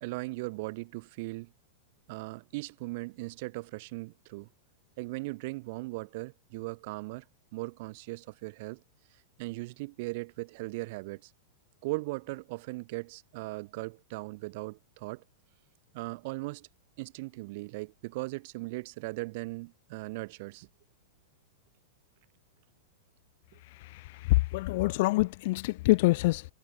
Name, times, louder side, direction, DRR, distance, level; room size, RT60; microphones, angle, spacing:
voice 1, 0.0-1.5 2.1-4.5 5.0-7.2 7.5-8.8 9.4-11.3 11.8-15.2 15.9-16.7 17.0-20.7, right 24 dB, 55° right, 1.9 m, -38 dB
voice 2, 23.8-26.5, left 21 dB, 55° left, 1.9 m, -26 dB
supercardioid pair, 140°, 0 cm